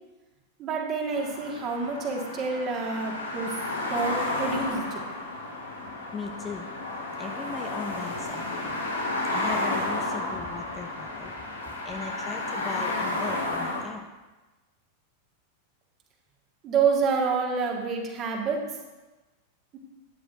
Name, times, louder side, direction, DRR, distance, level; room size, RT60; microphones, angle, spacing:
voice 1, 0.6-3.5 3.9-5.0 16.6-18.6, right 5 dB, 30° right, 0 dB, 2.0 m, -28 dB
sound 1, 1.1-13.8, left 2 dB, 75° left, 2.3 m, -32 dB
voice 2, 6.1-6.7 7.2-8.9 9.3-11.4 11.8-14.1, left 4 dB, 20° left, 5 dB, 0.7 m, -38 dB
12.5 x 9.8 x 2.7 m, 1.2 s
figure-of-eight pair, 90°, 0 cm